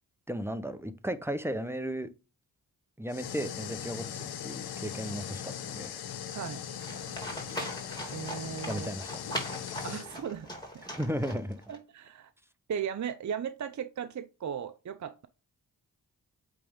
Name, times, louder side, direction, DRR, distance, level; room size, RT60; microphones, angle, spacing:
voice 1, 0.3-2.1 3.0-5.9 8.7-9.1 10.8-11.6, equal, 5° right, 0.8 m, -35 dB
sound 1, 3.1-10.1, left 9 dB, 90° left, 0.8 m, -39 dB
voice 2, 6.3-6.6 8.1-8.9 9.8-10.5 10.7-10.8 11.7-12.3 12.7-15.3, right 8 dB, 50° right, 0.6 m, -36 dB
Livestock farm animals working animals, 6.8-11.8, equal, 10° left, 3.0 m, -40 dB
8.4 x 3.5 x 3.6 m
cardioid pair, 55°, 37 cm